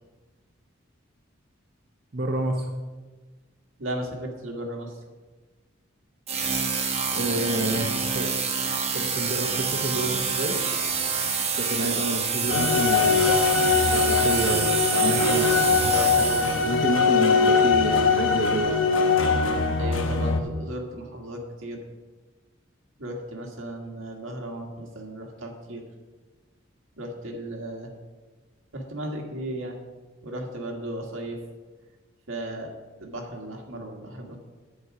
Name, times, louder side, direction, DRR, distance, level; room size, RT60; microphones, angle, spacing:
voice 1, 2.1-2.7 7.1-8.3 8.9-10.6 11.6-13.4 13.9-14.7 14.9-15.9 16.6-18.7, right 2 dB, 50° right, 1 dB, 0.9 m, -29 dB
voice 2, 3.8-5.0 11.8-12.0 15.9-16.7 19.8-21.8 23.0-25.8 27.0-27.9 28.7-29.8 30.2-31.4 32.3-32.7 33.0-34.4, right 1 dB, 85° right, 1 dB, 1.8 m, -35 dB
sound 1, 6.3-16.8, right 5 dB, 30° right, 1.1 m, -27 dB
sound 2, 12.5-20.4, left 4 dB, 75° left, 1.0 m, -21 dB
9.6 x 8.7 x 4.9 m, 1.3 s
head